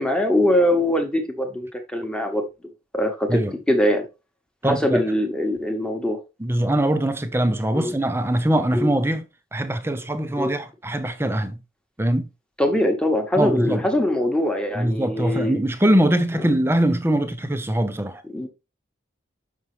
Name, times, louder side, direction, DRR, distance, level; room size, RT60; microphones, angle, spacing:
voice 1, 0.0-2.4 2.9-3.4 3.7-4.0 4.6-6.2 7.7-7.9 8.7-8.9 10.4-10.5 12.6-15.6 18.2-18.5, left 1 dB, 5° left, 1.1 m, -22 dB
voice 2, 4.6-5.0 6.4-9.3 9.5-11.6 12.0-12.3 13.4-13.8 14.7-18.2, right 1 dB, 10° right, 0.6 m, -22 dB
6.0 x 5.6 x 3.2 m
head